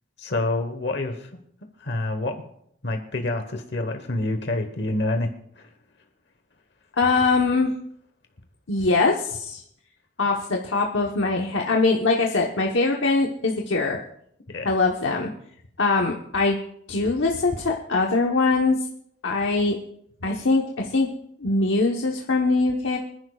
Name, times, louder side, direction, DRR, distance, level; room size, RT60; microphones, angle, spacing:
voice 1, 0.2-1.3 1.8-2.4 2.8-5.7 14.5-14.7, left 2 dB, 60° left, 6 dB, 1.2 m, -27 dB
voice 2, 7.0-7.7 8.7-9.6 10.2-14.0 14.6-15.3 15.8-16.6 16.9-18.8 19.2-19.8 20.2-21.1 21.4-23.0, left 3 dB, 85° left, 0 dB, 1.1 m, -22 dB
25.5 x 10.5 x 2.4 m, 0.71 s
head